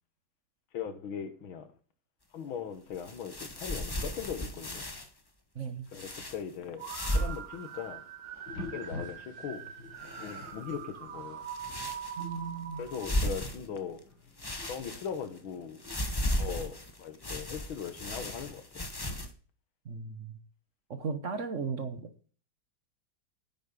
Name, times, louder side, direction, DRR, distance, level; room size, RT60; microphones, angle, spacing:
voice 1, 0.7-1.7 2.3-4.9 5.9-6.9 7.1-8.0 8.6-9.6 10.2-11.5 12.8-14.0 14.7-15.9 16.4-18.9, left 7 dB, 85° left, 2.2 m, -39 dB
sound 1, 2.9-5.1 5.9-6.4 6.8-7.4 7.7-7.8 8.3-8.9 10.0-10.6 11.4-12.3 12.8-14.0 14.4-15.4 15.8-19.3, equal, 20° left, 0.7 m, -35 dB
voice 2, 5.5-5.9 12.2-12.8 19.8-20.4 20.9-22.1, right 5 dB, 45° right, 1.2 m, -36 dB
sound 2, 6.8-13.2, right 8 dB, 65° right, 1.8 m, -43 dB
sound 3, 8.5-16.0, left 3 dB, 55° left, 3.8 m, -48 dB
10.0 x 7.8 x 5.4 m
omnidirectional pair, 2.2 m